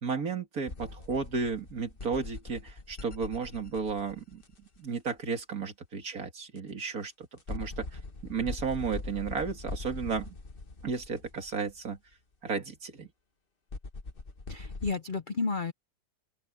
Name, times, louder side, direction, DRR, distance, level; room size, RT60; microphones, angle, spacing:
voice 1, 0.0-4.4 4.8-10.4 10.8-12.0 12.4-13.1, right 5 dB, 55° right, 2.6 m, -33 dB
sound 1, 0.7-4.8 6.6-6.7 7.4-11.9 13.7-14.9, left 3 dB, 35° left, 1.6 m, -41 dB
voice 2, 14.5-15.7, left 4 dB, 60° left, 0.5 m, -32 dB
open air
omnidirectional pair, 1.8 m